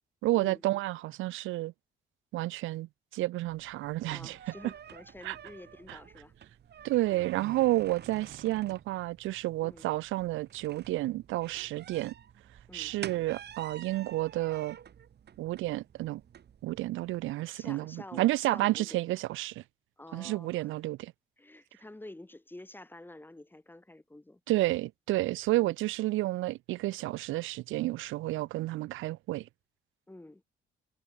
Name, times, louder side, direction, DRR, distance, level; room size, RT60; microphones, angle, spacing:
voice 1, 0.2-1.7 2.3-4.4 5.2-5.4 5.9-6.0 6.8-12.1 12.7-14.8 15.4-16.2 16.6-19.6 20.1-21.1 24.5-29.5, right 17 dB, 90° right, 0.7 m, -31 dB
sound 1, 3.5-17.3, right 9 dB, 60° right, 3.5 m, -49 dB
voice 2, 4.1-6.3 9.6-9.9 12.7-13.0 17.5-19.1 20.0-20.8 21.4-24.4 25.5-25.8 28.3-28.5 30.1-30.4, left 1 dB, 10° left, 3.0 m, -49 dB
cardioid pair, 90°, 20 cm